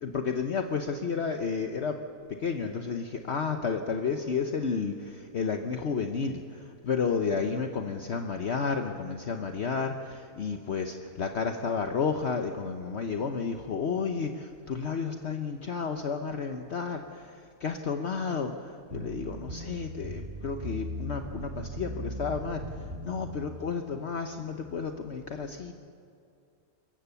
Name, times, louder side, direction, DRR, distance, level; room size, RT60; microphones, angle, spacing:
voice 1, 0.0-2.0 2.4-6.4 6.8-17.3 17.6-22.6 23.0-25.7, left 5 dB, 55° left, 5 dB, 1.1 m, -31 dB
sound 1, 18.9-23.5, equal, 40° right, 2.6 m, -38 dB
26.0 x 15.5 x 6.9 m, 2.5 s
omnidirectional pair, 1.5 m